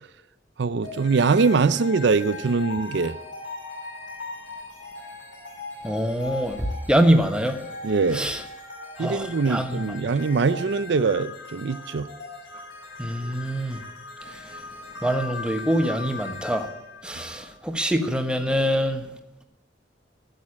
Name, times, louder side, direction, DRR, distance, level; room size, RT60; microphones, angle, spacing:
voice 1, 0.6-3.2 7.8-8.3 9.0-12.1, right 4 dB, 65° right, 0.5 m, -22 dB
sound 1, 0.8-18.0, left 3 dB, 80° left, 6.1 m, -39 dB
voice 2, 5.8-7.6 8.1-8.4 9.0-9.8 13.0-13.8 15.0-16.7 17.0-19.0, equal, 5° right, 1.2 m, -24 dB
12.5 x 8.4 x 8.5 m
head